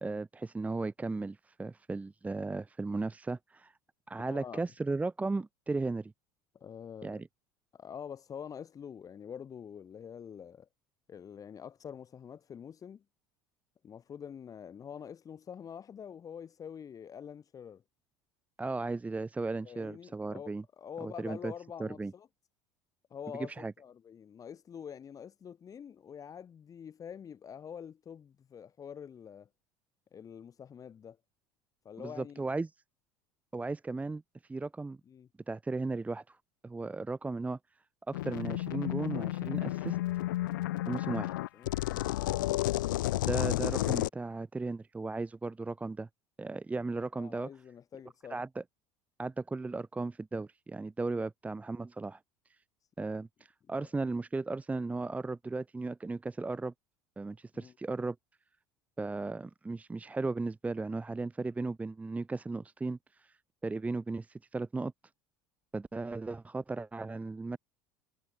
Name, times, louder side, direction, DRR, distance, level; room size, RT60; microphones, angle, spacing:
voice 1, 0.0-3.7 4.1-6.1 7.0-7.3 18.6-20.6 21.0-21.5 21.8-22.1 23.6-23.7 32.0-32.7 33.5-34.2 34.5-35.0 35.5-36.4 36.6-37.6 38.1-40.0 40.9-41.3 43.3-46.1 46.4-47.5 48.3-48.6 49.2-52.2 53.0-56.7 57.2-58.2 59.0-63.4 63.6-64.9 65.7-67.6, right 3 dB, 15° right, 0.8 m, -36 dB
voice 2, 4.2-4.6 6.5-7.2 7.7-10.7 11.1-13.0 13.8-17.8 19.6-20.5 20.8-22.3 23.1-29.5 30.1-31.2 31.8-32.5 35.1-35.3 41.1-42.4 47.1-48.4 53.7-53.9 57.5-57.7, left 8 dB, 35° left, 1.5 m, -46 dB
sound 1, 38.1-44.1, left 16 dB, 85° left, 0.6 m, -32 dB
hypercardioid pair, 85°, 10 cm